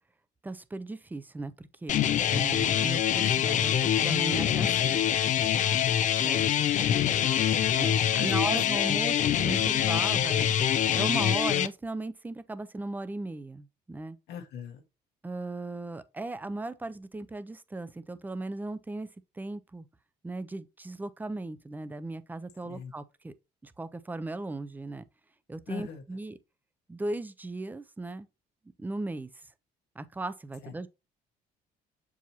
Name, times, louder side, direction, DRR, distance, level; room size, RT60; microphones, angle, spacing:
voice 1, 0.4-2.0 2.3-5.0 6.2-6.4 7.8-10.5 10.9-14.2 15.2-19.1 19.4-19.9 20.2-23.3 23.6-25.0 25.5-26.4 26.9-28.3 28.8-29.3 30.0-30.9, right 2 dB, 10° right, 0.5 m, -37 dB
sound 1, 1.9-11.7, left 10 dB, 50° left, 0.4 m, -25 dB
voice 2, 6.2-7.5 8.2-8.6 8.9-9.0 14.3-14.8 22.6-22.9 25.7-26.0 30.6-30.7, left 7 dB, 80° left, 1.3 m, -42 dB
6.8 x 4.8 x 2.9 m
cardioid pair, 110°, 17 cm